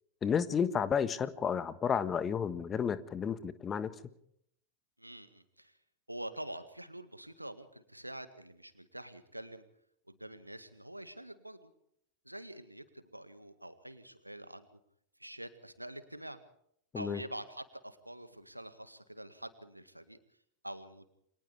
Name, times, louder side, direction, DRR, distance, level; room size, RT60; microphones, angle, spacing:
voice 1, 0.2-3.9 16.9-17.2, left 7 dB, 20° left, 14 dB, 1.5 m, -31 dB
voice 2, 5.0-5.8 6.1-9.6 10.1-11.7 12.2-14.7 15.2-16.4 16.9-20.2 20.6-21.1, right 1 dB, 85° right, 11 dB, 1.9 m, -46 dB
29.0 x 25.0 x 3.5 m, 0.70 s
figure-of-eight pair, 90°, 0 cm